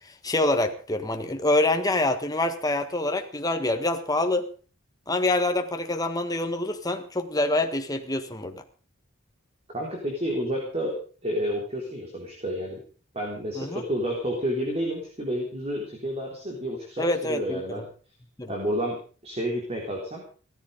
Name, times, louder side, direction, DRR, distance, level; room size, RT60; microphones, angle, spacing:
voice 1, 0.2-4.5 5.1-8.6 13.6-13.8 17.0-17.8 18.4-18.5, left 2 dB, 20° left, 6 dB, 1.6 m, -26 dB
voice 2, 9.7-12.8 13.1-17.8 18.5-20.2, equal, 30° right, 0 dB, 3.7 m, -30 dB
16.5 x 14.0 x 5.2 m, 0.39 s
head